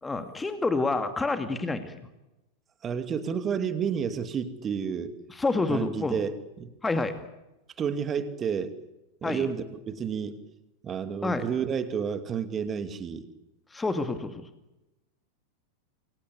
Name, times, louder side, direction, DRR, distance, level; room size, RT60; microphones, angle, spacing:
voice 1, 0.0-1.9 5.4-6.2 6.8-7.2 9.2-9.5 11.2-11.4 13.7-14.4, left 3 dB, 10° left, 8 dB, 2.3 m, -28 dB
voice 2, 2.8-5.1 5.7-6.7 7.8-8.7 9.2-10.4 10.8-13.3, right 7 dB, 25° right, 10 dB, 2.6 m, -30 dB
29.0 x 22.5 x 8.3 m, 0.98 s
figure-of-eight pair, 90°, 0 cm